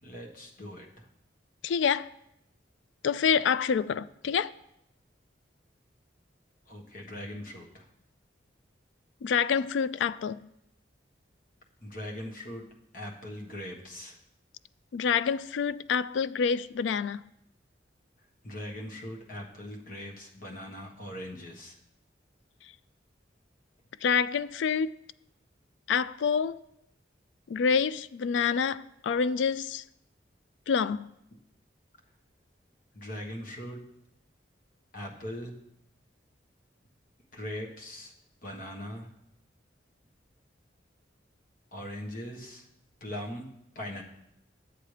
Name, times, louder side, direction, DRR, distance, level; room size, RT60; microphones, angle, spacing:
voice 1, 0.0-1.0 6.7-7.9 11.8-12.6 12.9-14.2 18.4-21.7 32.9-33.8 34.9-35.5 37.3-38.1 38.4-39.1 41.7-42.6 43.0-43.5 43.7-44.0, left 1 dB, 50° left, 1.4 m, -40 dB
voice 2, 1.6-2.1 3.0-4.5 9.2-10.4 14.9-17.2 24.0-24.9 25.9-26.6 27.5-29.8 30.7-31.1, left 6 dB, 80° left, 0.3 m, -27 dB
12.0 x 7.9 x 3.3 m
head